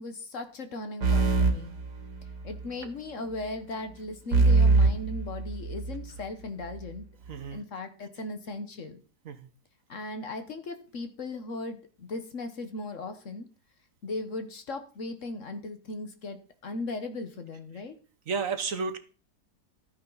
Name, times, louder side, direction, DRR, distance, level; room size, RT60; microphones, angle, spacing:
voice 1, 0.0-1.7 2.4-7.0 7.5-9.0 9.9-13.5 14.0-17.9, left 2 dB, 50° left, 8 dB, 1.4 m, -37 dB
sound 1, 1.0-2.6 4.3-6.1, right 3 dB, 80° right, 2.3 m, -23 dB
voice 2, 7.3-7.6 9.3-9.5 18.3-19.0, right 5 dB, 55° right, 9 dB, 1.3 m, -32 dB
13.0 x 9.5 x 4.0 m, 0.36 s
omnidirectional pair, 1.8 m